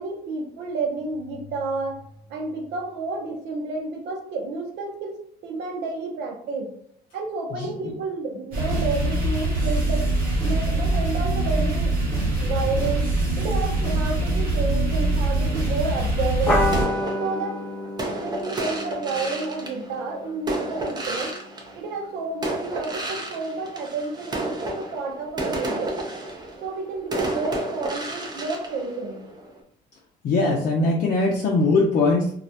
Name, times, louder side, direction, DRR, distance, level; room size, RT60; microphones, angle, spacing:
voice 1, 0.0-2.0 2.3-5.2 5.4-6.7 7.1-10.1 10.4-11.9 12.4-13.1 13.4-16.7 17.2-17.6 18.2-21.4 21.7-26.0 26.6-29.2, right 3 dB, 85° right, 2 dB, 0.7 m, -30 dB
sound 1, 8.5-16.9, right 2 dB, 55° right, 1.0 m, -23 dB
sound 2, 16.5-21.4, left 1 dB, 10° left, 1.0 m, -29 dB
sound 3, 16.7-22.1 22.4-29.6, right 2 dB, 25° right, 0.5 m, -31 dB
voice 2, 30.2-32.4, left 3 dB, 55° left, -2 dB, 0.5 m, -21 dB
2.3 x 2.0 x 2.7 m, 0.63 s
cardioid pair, 110°, 17 cm